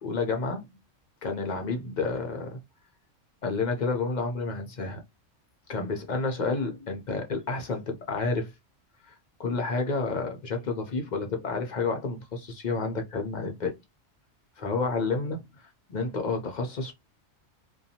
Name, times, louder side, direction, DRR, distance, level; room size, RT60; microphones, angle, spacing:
voice 1, 0.0-0.6 1.2-2.6 3.4-5.0 5.7-8.5 9.0-13.7 14.6-16.9, left 3 dB, 50° left, 0.5 m, -30 dB
2.6 x 2.3 x 2.7 m
omnidirectional pair, 1.3 m